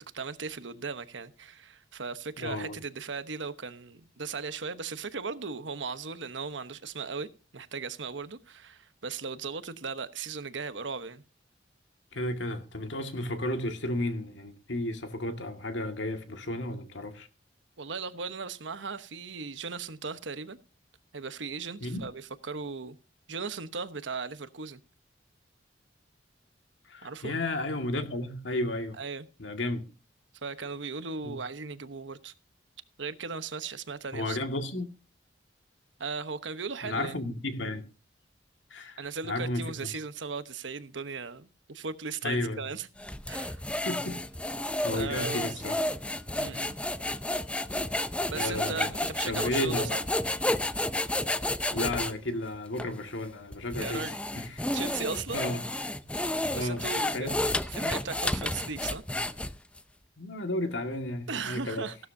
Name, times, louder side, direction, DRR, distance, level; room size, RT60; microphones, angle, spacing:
voice 1, 0.0-7.3 7.5-11.2 17.8-20.6 21.1-23.0 23.3-24.8 27.0-27.4 29.0-29.3 30.4-32.3 33.0-34.4 36.0-37.2 39.0-42.9 43.3-43.6 44.6-45.6 46.3-46.7 48.3-50.0 53.8-54.2 54.7-55.5 56.5-59.0 61.3-61.9, right 5 dB, 80° right, 1.1 m, -37 dB
voice 2, 2.4-2.8 12.1-17.3 21.8-22.1 26.9-29.0 29.4-29.9 31.2-31.4 34.1-34.9 36.8-37.9 38.7-39.6 42.2-42.6 43.9-44.2 44.8-45.8 48.3-48.9 49.2-49.9 51.7-54.6 55.3-55.6 56.5-56.8 57.1-57.4 60.2-61.9, left 1 dB, 80° left, 2.0 m, -33 dB
sound 1, 43.0-52.1 52.8-52.9 53.5-59.8, left 1 dB, 5° left, 0.5 m, -31 dB
16.0 x 12.5 x 2.7 m
head